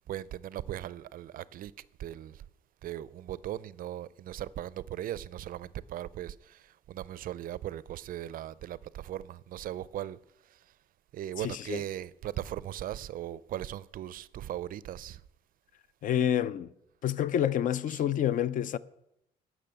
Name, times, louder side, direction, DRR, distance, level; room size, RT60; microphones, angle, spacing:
voice 1, 0.1-1.7 2.0-2.4 2.8-10.2 11.1-15.2 17.9-18.0, right 12 dB, 60° right, 0.4 m, -38 dB
voice 2, 11.4-11.8 16.0-16.7 17.0-18.8, left 10 dB, 55° left, 0.5 m, -28 dB
12.0 x 6.2 x 8.9 m
cardioid pair, 155°, 16 cm